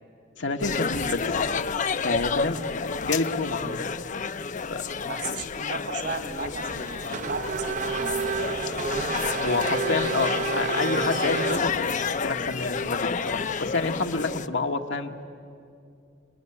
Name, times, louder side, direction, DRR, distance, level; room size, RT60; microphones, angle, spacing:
voice 1, 0.4-1.3 2.0-3.9 4.7-4.8 9.4-15.2, left 3 dB, 75° left, 5 dB, 1.4 m, -29 dB
sound 1, 0.6-14.5, left 5 dB, 40° left, 0.6 m, -30 dB
voice 2, 5.1-8.2, right 4 dB, 60° right, 8 dB, 2.4 m, -36 dB
Race car auto racing / Accelerating revving vroom, 6.7-12.2, right 5 dB, 40° right, 0.6 m, -31 dB
28.5 x 20.0 x 9.8 m, 2.5 s
head